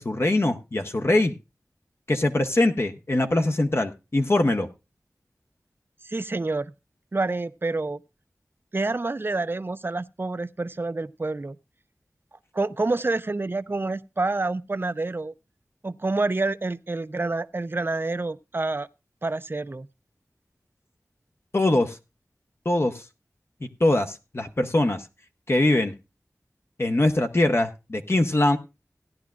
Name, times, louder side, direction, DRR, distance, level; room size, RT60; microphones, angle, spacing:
voice 1, 0.0-1.3 2.1-4.7 21.5-22.0 22.6-23.0 23.6-25.1 25.5-25.9 26.8-28.6, left 1 dB, 45° left, 0.9 m, -22 dB
voice 2, 6.0-6.7 7.1-8.0 8.7-11.6 12.5-15.3 15.8-18.9 19.2-19.9, right 3 dB, 40° right, 0.5 m, -28 dB
16.0 x 10.5 x 2.4 m
wide cardioid pair, 70°, 6 cm